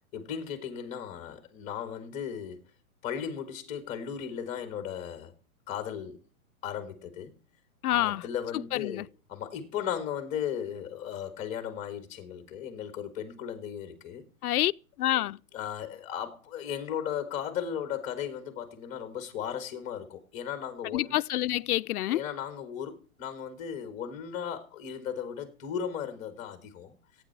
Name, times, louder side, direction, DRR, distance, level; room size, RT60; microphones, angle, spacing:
voice 1, 0.1-2.6 3.0-5.3 5.7-6.2 6.6-7.3 7.9-14.2 15.1-21.2 22.1-27.0, left 8 dB, 15° left, 1.9 m, -36 dB
voice 2, 7.8-8.2 8.7-9.0 14.4-14.7 15.0-15.4 20.9-22.2, left 14 dB, 80° left, 0.6 m, -27 dB
15.5 x 9.3 x 4.7 m
hypercardioid pair, 170°, 44 cm